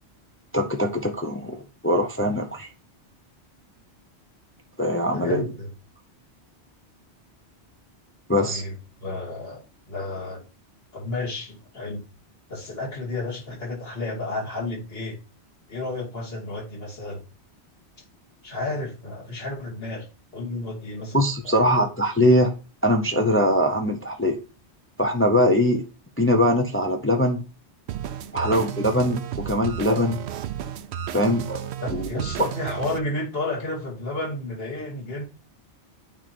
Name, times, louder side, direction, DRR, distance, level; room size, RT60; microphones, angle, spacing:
voice 1, 0.5-2.7 4.8-5.4 8.3-8.6 21.1-22.5 22.8-24.4 25.0-25.8 26.2-27.4 28.3-30.2 31.1-32.0, equal, 15° left, 0.5 m, -22 dB
voice 2, 5.1-5.7 8.4-10.4 10.9-12.0 12.5-15.2 15.7-17.2 18.4-20.1 20.3-21.2 21.6-21.8 28.3-28.6 31.8-35.2, left 2 dB, 60° left, 2.6 m, -32 dB
sound 1, 27.9-33.0, right 10 dB, 75° right, 0.8 m, -33 dB
9.0 x 3.1 x 4.3 m
omnidirectional pair, 1.1 m